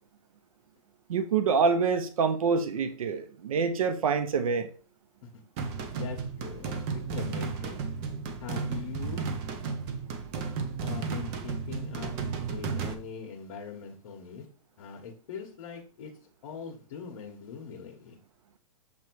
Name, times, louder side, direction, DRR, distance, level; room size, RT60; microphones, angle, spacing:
voice 1, 1.1-4.7, right 5 dB, 90° right, 10 dB, 0.7 m, -26 dB
sound 1, 5.6-12.9, right 5 dB, 30° right, 0.7 m, -33 dB
voice 2, 5.9-7.8 8.4-9.4 10.8-12.1 12.5-14.5 14.8-16.1 16.4-18.2, left 6 dB, 55° left, -1 dB, 1.3 m, -42 dB
6.9 x 3.1 x 4.6 m, 0.40 s
hypercardioid pair, 160°, 17 cm